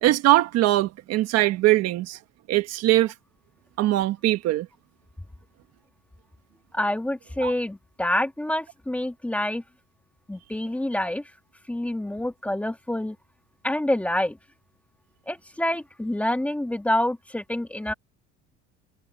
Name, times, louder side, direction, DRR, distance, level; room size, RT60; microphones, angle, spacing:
voice 1, 0.0-2.2 2.5-3.1 3.8-4.7 7.4-7.5, right 16 dB, 50° right, 1.4 m, -21 dB
voice 2, 6.7-9.6 10.3-11.2 11.7-13.2 13.6-14.4 15.3-17.9, left 1 dB, 5° left, 1.5 m, -27 dB
cardioid pair, 160°, 33 cm